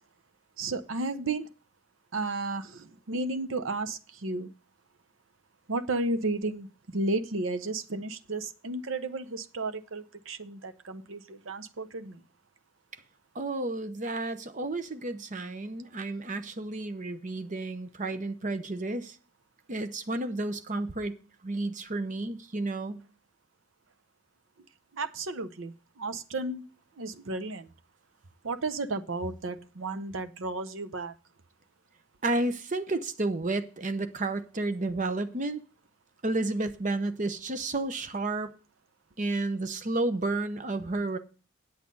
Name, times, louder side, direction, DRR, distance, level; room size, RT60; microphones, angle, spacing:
voice 1, 0.6-1.5 2.1-4.5 5.7-12.2 24.9-26.6 27.0-27.7 28.4-31.1, right 2 dB, 75° right, 0.8 m, -33 dB
voice 2, 13.3-19.1 19.7-21.2 21.4-23.0 32.2-35.6 36.2-38.5 39.2-41.2, right 2 dB, 40° right, 0.8 m, -31 dB
8.3 x 8.0 x 5.3 m
head